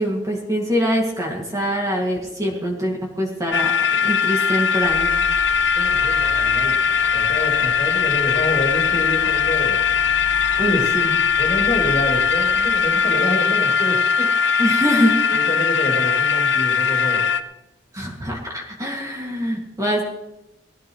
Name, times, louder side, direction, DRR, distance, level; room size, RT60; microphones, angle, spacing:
voice 1, 0.0-3.7 4.0-5.1 10.6-11.1 14.6-15.5 17.9-20.0, equal, 20° right, -1 dB, 2.2 m, -24 dB
sound 1, 3.5-17.4, left 6 dB, 75° left, 0.8 m, -20 dB
sound 2, 4.8-13.5, right 1 dB, 85° right, 5.9 m, -38 dB
voice 2, 5.8-6.7 7.1-9.8 10.1-10.2 10.5-10.8 11.4-14.3 15.3-17.2, left 1 dB, 35° left, 0 dB, 3.0 m, -27 dB
20.5 x 15.5 x 3.2 m, 0.91 s
head